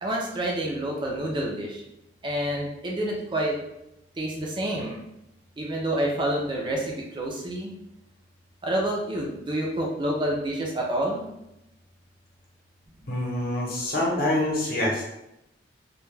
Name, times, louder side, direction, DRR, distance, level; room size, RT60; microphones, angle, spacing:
voice 1, 0.0-1.8 2.2-3.6 4.2-5.0 5.6-7.7 8.6-11.3, right 1 dB, 25° right, -2 dB, 0.3 m, -28 dB
voice 2, 13.1-15.0, left 1 dB, 50° left, -4 dB, 0.8 m, -26 dB
2.2 x 2.2 x 3.1 m, 0.86 s
head